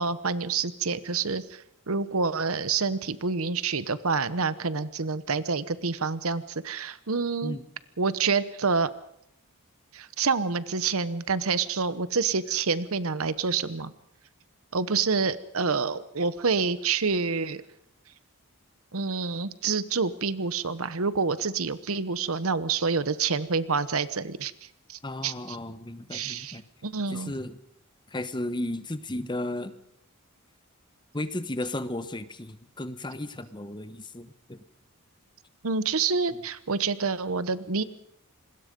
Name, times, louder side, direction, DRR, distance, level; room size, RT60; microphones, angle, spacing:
voice 1, 0.0-7.6 8.0-8.9 9.9-13.9 14.7-17.6 18.9-24.5 24.9-25.6 26.1-27.3 35.6-37.8, right 4 dB, 70° right, 15 dB, 1.0 m, -27 dB
voice 2, 25.0-26.6 27.1-27.6 28.1-29.7 31.1-34.6, left 1 dB, 20° left, 12 dB, 1.1 m, -34 dB
26.5 x 20.5 x 5.3 m, 0.73 s
head